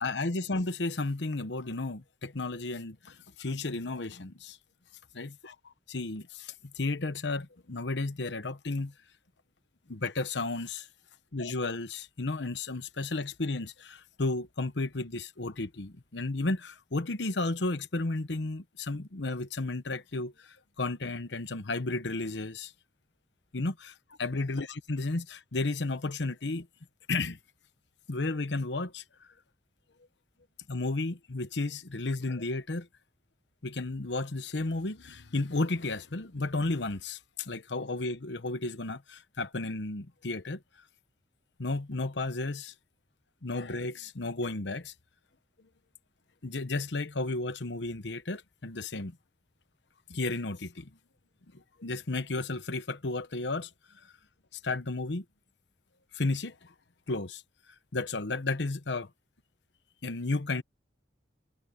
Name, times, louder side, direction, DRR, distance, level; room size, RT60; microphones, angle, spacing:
voice 1, 0.0-4.6 5.1-8.9 9.9-10.9 11.3-22.7 23.5-26.7 27.1-27.4 28.1-29.3 30.7-32.9 33.6-40.6 41.6-42.7 43.4-44.9 46.4-49.2 50.1-50.9 51.5-54.1 54.5-55.2 56.1-56.7 57.1-57.4 57.9-59.1 60.0-60.6, left 2 dB, 75° left, 1.1 m, -33 dB
head